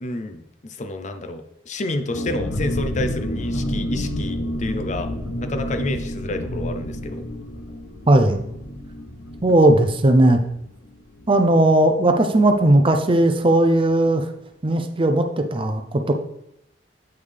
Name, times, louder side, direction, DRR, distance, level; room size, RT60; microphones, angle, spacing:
voice 1, 0.0-5.1 5.4-7.3, left 2 dB, 40° left, 7 dB, 0.5 m, -29 dB
sound 1, 2.1-11.5 11.8-11.9 12.2-12.5, equal, 85° left, 0.9 m, -30 dB
voice 2, 8.1-8.4 9.4-10.4 11.3-14.3 14.6-16.1, right 1 dB, 30° right, 6 dB, 0.5 m, -17 dB
8.0 x 5.3 x 3.4 m, 0.82 s
head